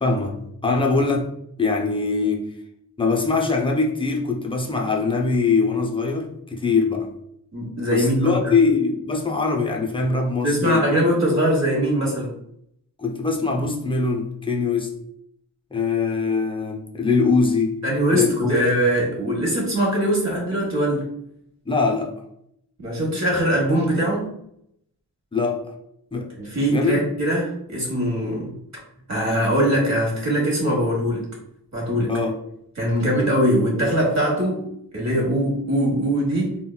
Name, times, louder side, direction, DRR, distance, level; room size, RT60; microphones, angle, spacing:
voice 1, 0.0-1.3 1.6-2.5 3.0-7.1 7.9-10.9 13.0-14.9 15.7-17.8 18.1-18.5 21.7-22.1 25.3-25.6 26.1-26.3 26.7-27.0 32.1-32.4, left 4 dB, 15° left, 1 dB, 0.5 m, -22 dB
voice 2, 7.5-8.5 10.4-12.3 17.8-21.1 22.8-24.2 26.4-28.5 29.1-31.3 31.7-32.1 32.8-34.7 34.9-36.6, right 1 dB, 45° right, -2 dB, 1.2 m, -22 dB
3.7 x 2.2 x 2.2 m, 0.73 s
cardioid pair, 80°, 38 cm